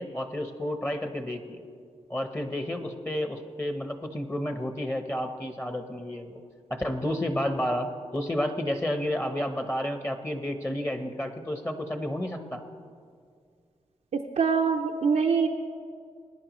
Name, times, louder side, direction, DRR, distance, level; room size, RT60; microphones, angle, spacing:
voice 1, 0.0-1.6 2.1-6.4 6.7-12.6, left 1 dB, 20° left, 7 dB, 1.0 m, -31 dB
voice 2, 14.4-15.5, right 5 dB, 75° right, 1 dB, 0.6 m, -23 dB
20.5 x 9.9 x 3.1 m, 2.1 s
cardioid pair, 55°, 12 cm